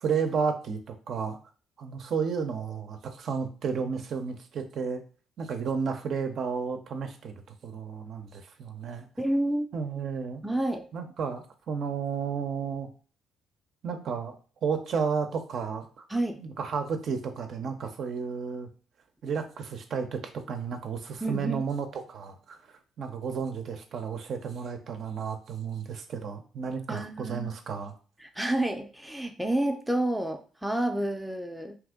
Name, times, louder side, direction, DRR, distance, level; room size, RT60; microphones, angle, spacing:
voice 1, 0.0-1.4 1.8-5.0 5.4-9.1 9.7-10.4 10.9-12.9 13.8-14.3 14.6-16.0 16.4-18.7 19.2-22.6 23.0-27.9, right 6 dB, 60° right, 5 dB, 0.5 m, -32 dB
voice 2, 9.2-9.7 10.4-10.9 16.1-16.4 21.2-21.6 26.9-27.5 28.2-31.8, right 1 dB, ahead, 4 dB, 0.5 m, -29 dB
2.9 x 2.5 x 3.6 m, 0.39 s
supercardioid pair, 65°, 0 cm